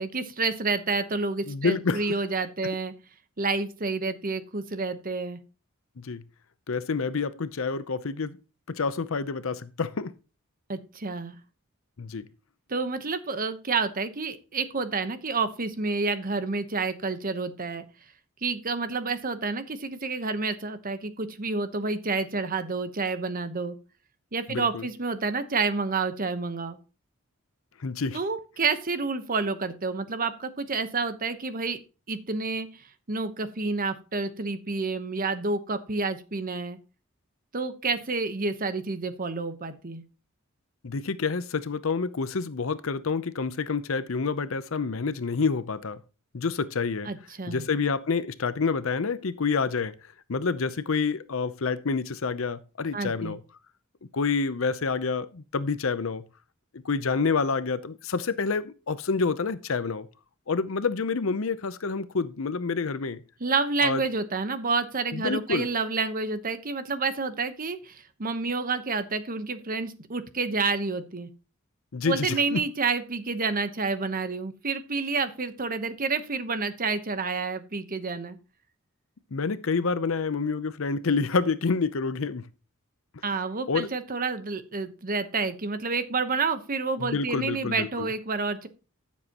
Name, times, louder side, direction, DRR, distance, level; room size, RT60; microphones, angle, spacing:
voice 1, 0.0-2.9 3.4-5.4 10.7-11.3 12.7-17.8 18.4-23.8 24.3-26.8 28.1-31.8 32.1-36.8 37.5-40.0 47.0-47.7 52.9-53.3 63.4-71.3 72.0-78.4 83.2-88.7, right 4 dB, 45° right, 1.0 m, -29 dB
voice 2, 1.5-2.0 2.6-2.7 6.0-6.2 6.7-8.4 8.7-10.1 12.0-12.2 24.5-24.8 27.8-28.2 40.8-46.0 46.3-47.1 47.5-49.9 50.3-53.4 54.1-56.2 56.8-60.1 60.5-63.2 63.8-64.0 65.1-65.7 71.9-72.6 79.3-82.4 83.7-83.9 87.0-88.1, left 4 dB, 70° left, 0.7 m, -28 dB
13.5 x 7.4 x 3.0 m
head